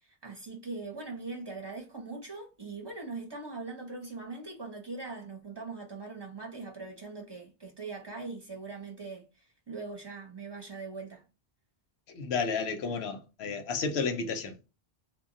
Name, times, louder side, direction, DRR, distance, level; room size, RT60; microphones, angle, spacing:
voice 1, 0.0-11.2, right 3 dB, 30° right, 0.5 m, -41 dB
voice 2, 12.1-14.6, left 5 dB, 90° left, 0.9 m, -32 dB
2.2 x 2.0 x 3.6 m
omnidirectional pair, 1.0 m